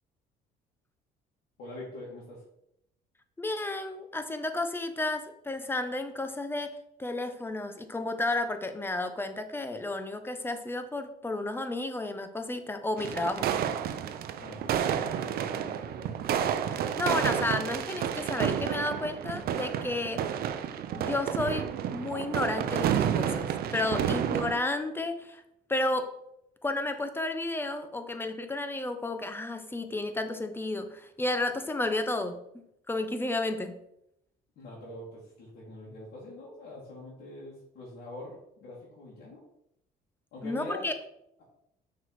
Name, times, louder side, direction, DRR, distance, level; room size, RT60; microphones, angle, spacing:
voice 1, 1.6-2.4 14.4-16.2 23.8-24.4 34.6-39.4 40.3-40.9, left 1 dB, 75° left, -7 dB, 2.4 m, -44 dB
voice 2, 3.4-6.7 7.0-13.5 16.7-20.3 20.9-25.4 25.7-26.1 26.6-32.4 32.9-33.8 40.4-40.9, left 2 dB, 15° left, 8 dB, 0.8 m, -32 dB
sound 1, 13.0-24.6, right 9 dB, 65° right, 0.6 m, -30 dB
6.1 x 4.6 x 4.7 m, 0.78 s
cardioid pair, 110°, 17 cm